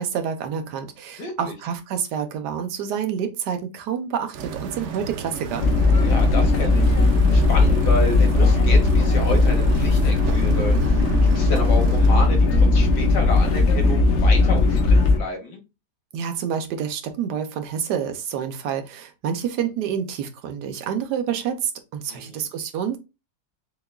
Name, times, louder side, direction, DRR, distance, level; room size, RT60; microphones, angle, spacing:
voice 1, 0.0-5.6 16.1-23.0, right 8 dB, 85° right, 1.3 m, -28 dB
voice 2, 1.2-1.5 6.0-15.6 22.1-22.5, left 2 dB, 85° left, 1.7 m, -31 dB
sound 1, 4.3-12.2, right 4 dB, 65° right, 0.7 m, -32 dB
sound 2, 5.6-15.2, left 3 dB, 55° left, 0.8 m, -17 dB
6.6 x 2.3 x 2.2 m
omnidirectional pair, 1.7 m